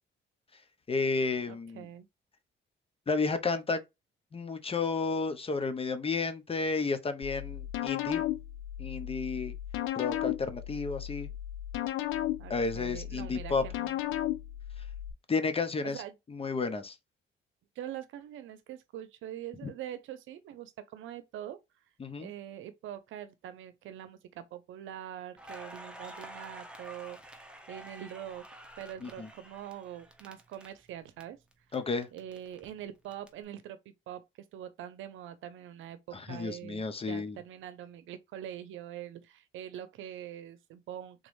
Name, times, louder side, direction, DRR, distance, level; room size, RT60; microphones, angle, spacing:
voice 1, 0.9-1.9 3.1-3.8 4.3-8.2 8.8-9.5 9.9-11.3 12.5-13.6 15.3-16.0 16.3-16.9 19.6-19.7 22.0-22.3 29.0-29.3 31.7-32.1 36.1-37.4, left 4 dB, 30° left, 0.8 m, -32 dB
voice 2, 1.5-2.1 12.4-14.0 15.8-16.2 17.8-21.6 22.2-31.4 32.1-33.8 34.1-34.2 34.5-41.3, right 11 dB, 85° right, 0.7 m, -44 dB
sound 1, 7.2-15.1, left 13 dB, 85° left, 0.5 m, -35 dB
Crackle, 25.4-31.2 31.5-33.3, right 1 dB, 5° right, 1.0 m, -49 dB
3.8 x 3.1 x 3.2 m
cardioid pair, 90°, 20 cm